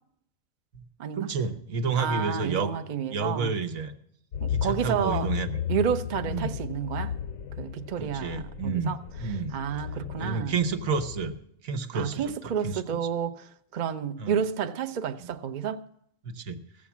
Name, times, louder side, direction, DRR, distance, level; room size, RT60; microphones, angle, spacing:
voice 1, 1.1-2.7 3.1-3.9 4.5-5.5 6.2-6.5 8.0-8.9 9.2-9.5 10.2-11.3 11.6-12.3 12.6-12.8 14.2-14.3 15.2-15.3 16.2-16.6, right 4 dB, 85° right, 1.4 m, -30 dB
voice 2, 2.0-3.5 4.4-5.3 5.7-7.1 7.6-9.0 9.5-10.5 11.9-15.8, right 7 dB, 50° right, 0.6 m, -30 dB
sound 1, 4.3-11.3, left 9 dB, 80° left, 1.2 m, -35 dB
15.5 x 7.4 x 7.2 m
omnidirectional pair, 1.4 m